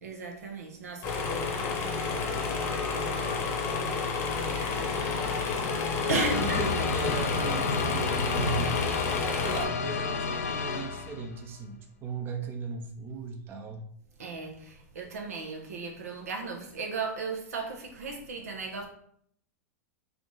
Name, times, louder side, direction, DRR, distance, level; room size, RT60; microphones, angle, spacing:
voice 1, 0.0-3.7 4.5-5.2 6.1-6.6 14.2-18.9, right 3 dB, 85° right, 1 dB, 0.9 m, -36 dB
sound 1, 1.0-9.6, left 4 dB, 35° left, 0.8 m, -31 dB
sound 2, 2.0-11.5, left 4 dB, 90° left, 0.5 m, -33 dB
voice 2, 6.1-8.8 9.4-13.8, right 5 dB, 25° right, 4 dB, 0.6 m, -37 dB
3.6 x 2.5 x 3.8 m, 0.65 s
hypercardioid pair, 120°, 8 cm